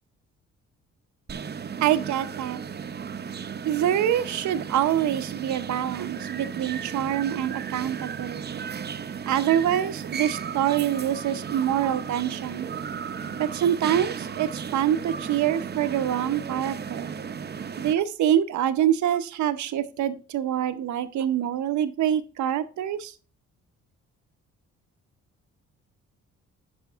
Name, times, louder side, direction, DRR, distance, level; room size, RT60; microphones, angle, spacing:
sound 1, 1.3-17.9, right 7 dB, 35° right, 0.7 m, -35 dB
voice 1, 1.8-2.6 3.6-8.7 9.3-12.7 13.4-17.1 17.8-23.1, right 10 dB, 70° right, 12 dB, 0.8 m, -25 dB
10.5 x 5.2 x 3.5 m, 0.37 s
cardioid pair, 90°, 30 cm